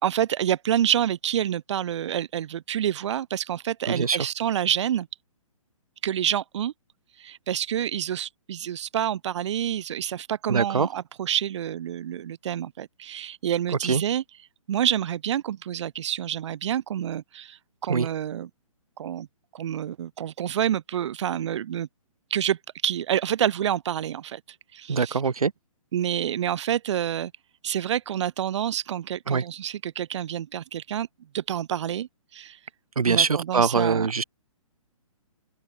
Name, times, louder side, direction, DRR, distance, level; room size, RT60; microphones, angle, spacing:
voice 1, 0.0-5.1 6.0-6.7 7.2-14.2 14.7-18.5 19.0-19.3 19.5-21.9 22.3-22.6 22.8-24.4 24.7-25.2 25.9-27.3 27.6-31.1 31.3-32.6 33.1-34.1, right 10 dB, 55° right, 3.9 m, -28 dB
voice 2, 3.9-4.3 10.5-10.9 13.8-14.0 17.9-18.1 24.9-25.5 29.3-29.4 33.0-34.2, right 5 dB, 80° right, 4.1 m, -23 dB
open air
hypercardioid pair, 135°, 18 cm